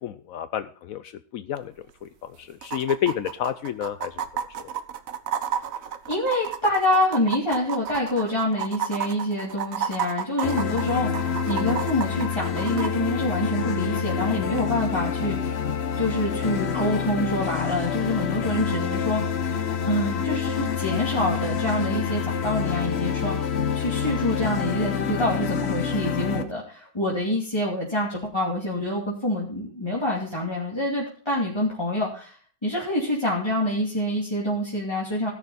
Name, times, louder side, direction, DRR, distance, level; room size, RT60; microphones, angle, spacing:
voice 1, 0.0-4.2 4.6-4.7, left 10 dB, 85° left, 11 dB, 0.7 m, -30 dB
sound 1, 1.6-1.7 1.9-2.0 2.6-12.9 14.6-14.7, right 8 dB, 55° right, 1.0 m, -31 dB
voice 2, 6.1-15.7 16.0-23.3 23.7-32.3 32.6-35.3, left 1 dB, 15° left, -5 dB, 2.7 m, -26 dB
sound 2, 10.4-26.4, left 7 dB, 50° left, 0.8 m, -27 dB
16.5 x 6.7 x 4.0 m, 0.43 s
omnidirectional pair, 2.1 m